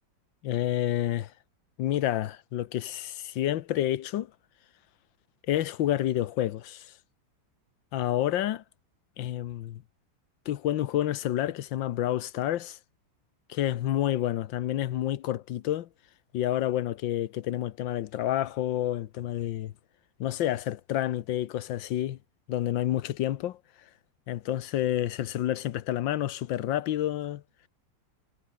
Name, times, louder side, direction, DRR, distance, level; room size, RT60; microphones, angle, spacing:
voice 1, 0.4-1.3 1.8-4.3 5.5-6.9 7.9-8.6 9.2-9.8 10.5-12.8 13.5-15.9 16.3-19.7 20.2-22.2 22.5-23.6 24.3-27.4, left 12 dB, 75° left, 1.6 m, -29 dB
omnidirectional pair, 2.1 m